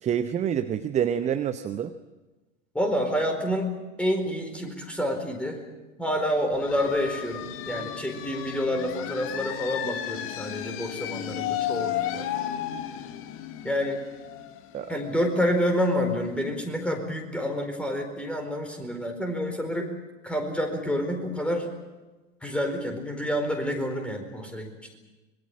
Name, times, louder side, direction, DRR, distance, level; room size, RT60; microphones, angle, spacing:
voice 1, 0.0-1.9 14.7-14.9, right 9 dB, 20° right, 10 dB, 0.8 m, -27 dB
voice 2, 2.7-3.7 4.0-5.6 6.0-12.3 13.6-14.0 14.9-19.9 20.2-21.7 22.4-25.0, equal, 5° left, 4 dB, 4.5 m, -28 dB
sound 1, 6.5-16.0, left 11 dB, 35° left, 1.6 m, -34 dB
25.5 x 22.5 x 7.3 m, 1.2 s
figure-of-eight pair, 90°, 39 cm